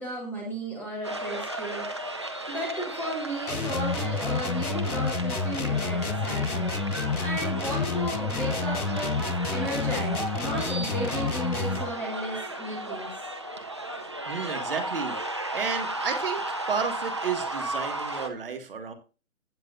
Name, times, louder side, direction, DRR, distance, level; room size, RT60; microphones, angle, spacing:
voice 1, 0.0-1.9 2.5-6.8 7.2-9.2 9.5-13.2, right 1 dB, 5° left, -2 dB, 1.5 m, -34 dB
sound 1, 1.0-18.3, right 2 dB, 20° right, 0.5 m, -34 dB
sound 2, 3.5-11.9, left 4 dB, 90° left, 1.1 m, -29 dB
voice 2, 14.3-15.2 15.5-16.4 16.7-18.9, right 6 dB, 40° right, 6 dB, 1.9 m, -32 dB
16.5 x 7.6 x 2.6 m, 0.33 s
figure-of-eight pair, 150°, 43 cm